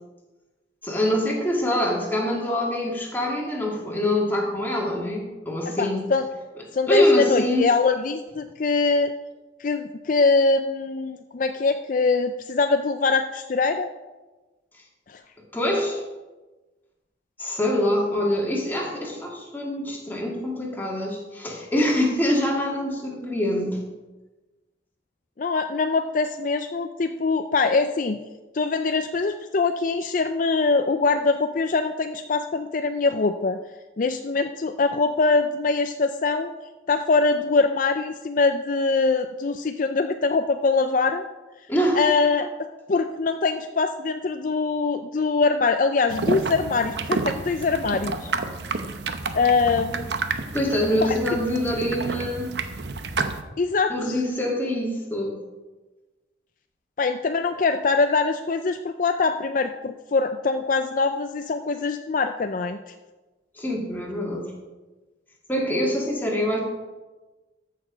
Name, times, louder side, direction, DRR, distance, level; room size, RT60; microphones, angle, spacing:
voice 1, 0.8-6.1 6.9-7.7 15.5-16.0 17.4-23.8 41.7-42.0 50.5-52.6 53.9-55.4 63.5-64.5 65.5-66.6, left 1 dB, 10° left, -2 dB, 2.2 m, -24 dB
voice 2, 5.7-6.3 6.7-9.1 9.6-13.9 15.1-15.2 25.4-28.2 28.5-33.6 34.0-36.5 36.9-41.2 42.0-42.5 42.9-48.3 49.3-50.1 51.0-51.2 53.6-54.2 57.0-62.8, left 4 dB, 45° left, 7 dB, 0.4 m, -23 dB
sound 1, 46.1-53.4, right 3 dB, 75° right, 0.8 m, -30 dB
14.0 x 6.7 x 5.0 m, 1.2 s
head